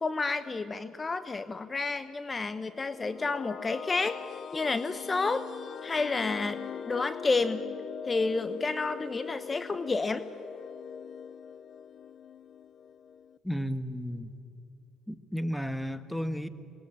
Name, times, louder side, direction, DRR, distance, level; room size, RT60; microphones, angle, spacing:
voice 1, 0.0-4.2 4.5-5.5 5.8-7.7 8.0-10.2, left 3 dB, 30° left, 12 dB, 0.9 m, -30 dB
sound 1, 2.5-13.4, left 7 dB, 50° left, 0.7 m, -42 dB
voice 2, 13.4-14.4 15.1-16.5, equal, 5° left, 11 dB, 1.5 m, -33 dB
25.0 x 20.5 x 8.8 m, 2.7 s
supercardioid pair, 70°, 0 cm